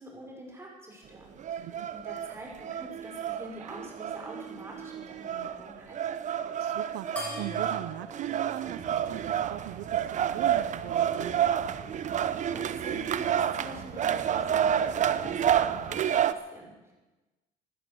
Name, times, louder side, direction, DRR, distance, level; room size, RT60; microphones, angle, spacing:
voice 1, 0.0-6.0 12.2-16.9, right 1 dB, 15° right, -1 dB, 5.6 m, -46 dB
sound 1, 1.4-16.3, right 9 dB, 45° right, 0.7 m, -29 dB
voice 2, 1.6-1.9 6.6-11.4, right 15 dB, 90° right, 14 dB, 0.6 m, -40 dB
sound 2, 7.2-10.0, left 1 dB, 10° left, 7.6 m, -43 dB
sound 3, 8.6-16.0, right 6 dB, 65° right, 1.9 m, -45 dB
16.5 x 11.5 x 7.0 m, 1.1 s
cardioid pair, 110°, 17 cm